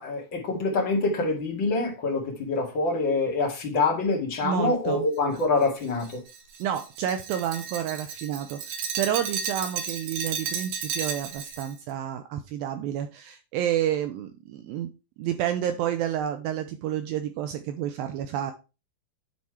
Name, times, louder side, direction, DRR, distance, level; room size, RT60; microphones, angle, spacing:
voice 1, 0.0-6.2, left 3 dB, 40° left, 1.9 m, -25 dB
voice 2, 4.4-5.1 6.6-14.9 15.2-18.5, right 10 dB, 90° right, 2.1 m, -30 dB
Glass, 5.4-11.7, right 6 dB, 65° right, 2.9 m, -33 dB
9.6 x 4.3 x 4.7 m
omnidirectional pair, 4.8 m